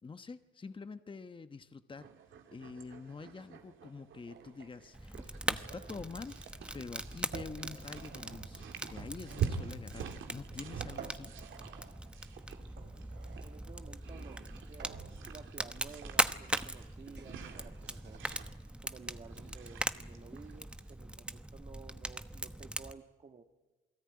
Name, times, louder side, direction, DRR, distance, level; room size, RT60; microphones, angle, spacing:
voice 1, 0.0-2.1 2.5-6.4 6.7-11.3, left 4 dB, 25° left, 10 dB, 1.1 m, -46 dB
sound 1, 2.0-20.9, right 8 dB, 75° right, 2.6 m, -46 dB
sound 2, 4.3-18.2, right 7 dB, 60° right, 3.6 m, -54 dB
Fire, 4.9-22.9, right 1 dB, 5° right, 1.0 m, -40 dB
voice 2, 13.4-18.2 18.8-23.4, right 5 dB, 35° right, 3 dB, 1.7 m, -54 dB
28.0 x 18.5 x 9.7 m, 1.2 s
cardioid pair, 90°, 20 cm